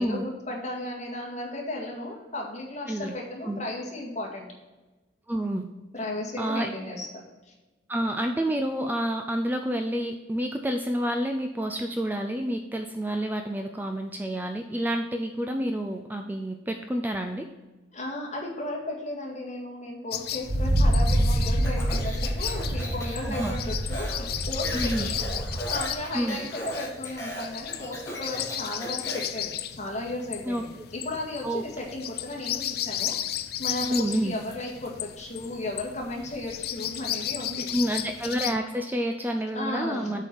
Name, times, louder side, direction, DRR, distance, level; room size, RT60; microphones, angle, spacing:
voice 1, 0.0-4.5 5.9-7.1 7.5-7.6 17.9-25.2 25.7-29.5 29.8-30.7 30.9-33.1 33.6-37.7 39.5-40.2, left 2 dB, 40° left, -2 dB, 1.9 m, -35 dB
voice 2, 5.3-5.6 6.4-6.7 7.9-17.5 23.2-23.5 24.7-25.1 26.1-26.4 30.4-30.6 31.4-31.6 33.9-34.3 37.7-40.2, equal, 10° right, 4 dB, 0.4 m, -29 dB
sound 1, 20.1-38.6, left 11 dB, 55° left, 0.4 m, -35 dB
Wind, 20.4-25.9, right 1 dB, 60° right, 1.0 m, -26 dB
Speech, 21.6-29.4, equal, 15° left, 1.6 m, -37 dB
7.8 x 4.7 x 5.5 m, 1.1 s
head